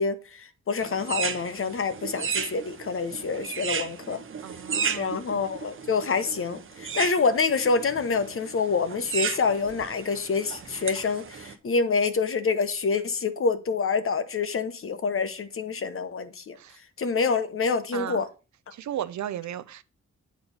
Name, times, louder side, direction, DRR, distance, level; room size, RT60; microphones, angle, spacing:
voice 1, 0.0-4.2 4.9-16.6 17.0-18.3, left 4 dB, 45° left, 1.0 m, -27 dB
sound 1, 0.8-11.5, right 6 dB, 45° right, 0.9 m, -34 dB
voice 2, 4.4-5.2 16.6-16.8 17.9-18.2 18.7-19.8, right 11 dB, 70° right, 0.6 m, -35 dB
8.3 x 4.3 x 5.4 m
cardioid pair, 90°, 29 cm